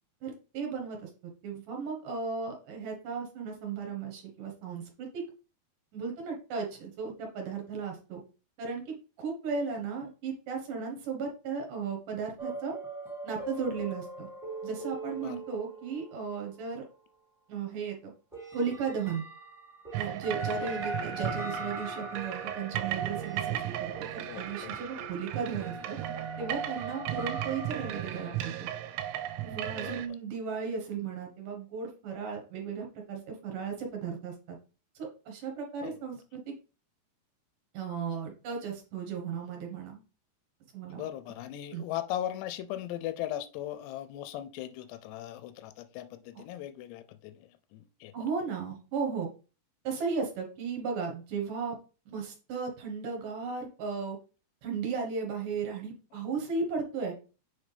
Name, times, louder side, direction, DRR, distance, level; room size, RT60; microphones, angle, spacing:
voice 1, 0.2-5.2 5.9-8.2 8.6-12.8 13.2-14.3 14.6-16.9 17.5-18.1 18.5-19.2 19.9-26.0 26.4-28.7 29.4-34.6 35.0-36.5 37.7-40.0 40.7-41.1 41.7-41.8 48.1-49.3 49.8-51.8 52.1-54.2 54.6-57.1, right 5 dB, 65° right, 1 dB, 2.3 m, -35 dB
sound 1, 12.4-16.6 18.3-28.9, right 1 dB, ahead, 1.2 m, -42 dB
sound 2, 19.9-30.1, right 12 dB, 90° right, 2.9 m, -36 dB
voice 2, 24.3-24.8 29.7-30.0 35.8-35.9 41.0-47.4 47.7-48.1, left 12 dB, 85° left, 11 dB, 2.5 m, -38 dB
7.3 x 4.3 x 3.3 m, 0.34 s
omnidirectional pair, 5.2 m